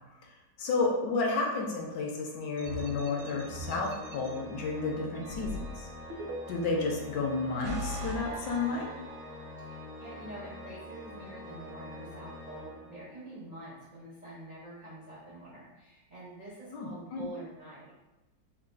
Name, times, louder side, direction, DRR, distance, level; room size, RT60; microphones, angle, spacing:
voice 1, 0.6-5.9 6.5-8.9 16.7-17.2, left 3 dB, 70° left, 0 dB, 1.1 m, -31 dB
Organ, 2.5-13.4, left 1 dB, 35° left, 0.6 m, -46 dB
sound 1, 2.6-4.3 5.2-6.8 7.4-9.5, right 1 dB, 85° right, 1.3 m, -40 dB
voice 2, 9.6-18.0, right 1 dB, 60° right, -8 dB, 0.4 m, -46 dB
3.3 x 2.3 x 3.7 m, 1.0 s
omnidirectional pair, 2.0 m